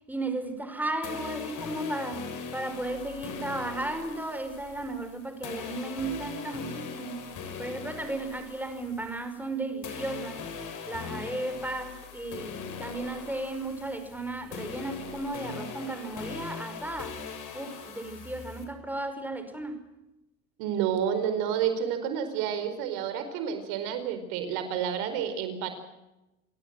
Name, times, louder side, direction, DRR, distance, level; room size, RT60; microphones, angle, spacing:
voice 1, 0.1-7.3 7.6-10.4 10.9-17.2 17.5-19.8, right 2 dB, 5° right, 7 dB, 5.5 m, -35 dB
sound 1, 1.0-9.5 9.8-18.6, left 6 dB, 45° left, 7.3 m, -41 dB
voice 2, 20.6-25.7, right 8 dB, 65° right, 9 dB, 4.7 m, -30 dB
29.0 x 17.5 x 7.8 m, 0.97 s
hypercardioid pair, 95°, 41 cm